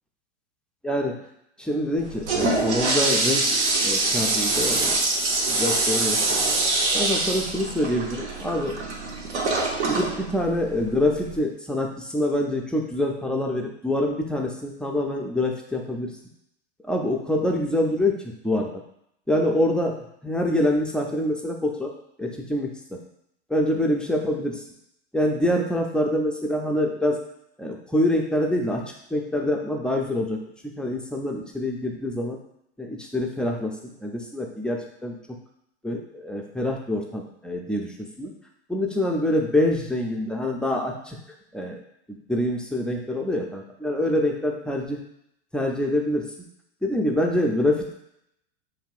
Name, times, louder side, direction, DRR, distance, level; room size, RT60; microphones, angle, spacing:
voice 1, 0.8-1.2 1.6-3.5 3.8-5.1 5.5-6.4 6.9-8.8 9.9-16.1 16.9-18.8 19.3-21.9 22.2-23.0 23.5-24.6 25.1-27.2 27.6-30.4 30.6-32.4 32.8-35.4 35.8-38.3 38.7-41.2 41.5-41.8 42.1-45.0 45.5-46.3 46.8-47.9, left 1 dB, 5° left, 0 dB, 0.4 m, -25 dB
Toilet flush, 2.0-11.4, right 3 dB, 75° right, 1.0 m, -24 dB
6.6 x 2.6 x 2.4 m, 0.76 s
hypercardioid pair, 100°, 34 cm